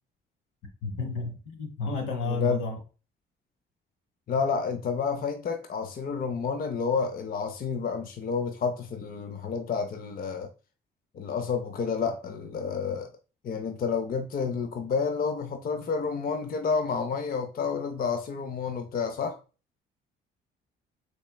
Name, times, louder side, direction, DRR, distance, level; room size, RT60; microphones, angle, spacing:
voice 1, 0.8-2.8, left 3 dB, 85° left, 1.1 m, -31 dB
voice 2, 2.2-2.6 4.3-10.5 11.1-13.1 13.4-19.4, left 5 dB, 45° left, 0.5 m, -30 dB
4.2 x 3.3 x 2.2 m
cardioid pair, 90°, 20 cm